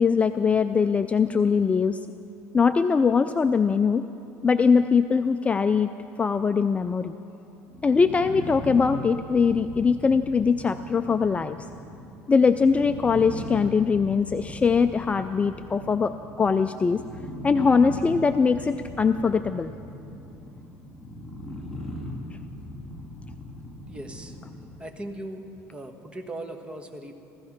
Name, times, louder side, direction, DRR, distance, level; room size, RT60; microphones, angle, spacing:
voice 1, 0.0-2.0 2.5-4.0 4.4-5.9 6.2-7.1 7.8-11.6 12.3-17.0 17.4-19.7, left 5 dB, 20° left, 9 dB, 0.4 m, -22 dB
sound 1, 7.7-24.9, left 1 dB, ahead, 2.9 m, -39 dB
voice 2, 23.9-24.4 24.8-25.4 25.7-27.1, right 1 dB, 15° right, 5 dB, 1.3 m, -38 dB
15.5 x 15.5 x 6.0 m, 2.7 s
cardioid pair, 125°, 6 cm